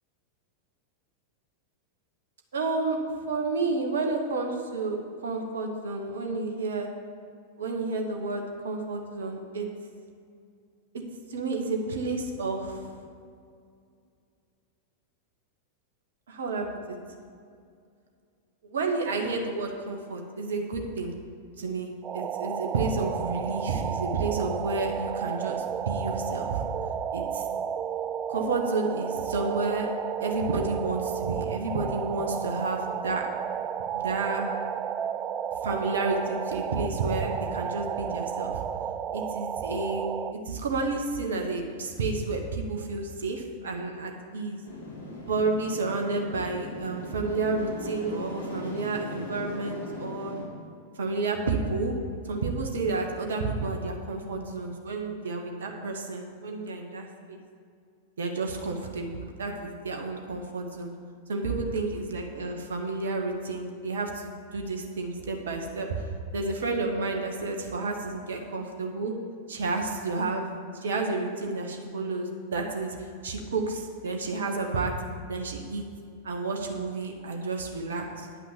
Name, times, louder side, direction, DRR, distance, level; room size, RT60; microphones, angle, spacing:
voice 1, 2.5-3.0 3.3-6.9 7.6-9.7 11.3-12.8 16.3-17.0 18.6-21.1 21.6-26.6 27.1-27.4 28.3-29.9 30.2-33.3 33.9-34.5 35.6-38.6 39.1-40.0 40.3-44.6 45.3-50.3 51.0-51.9 52.2-57.4 58.2-60.9 61.3-65.9 66.3-69.1 69.5-70.5 70.8-72.9 73.2-74.9 75.3-75.8 76.2-78.3, right 3 dB, 65° right, 2 dB, 1.1 m, -30 dB
sound 1, 22.0-40.3, right 9 dB, 30° right, 0.3 m, -32 dB
sound 2, 44.6-50.4, left 2 dB, 75° left, 2.7 m, -39 dB
9.6 x 5.7 x 7.2 m, 2.3 s
figure-of-eight pair, 90°, 0 cm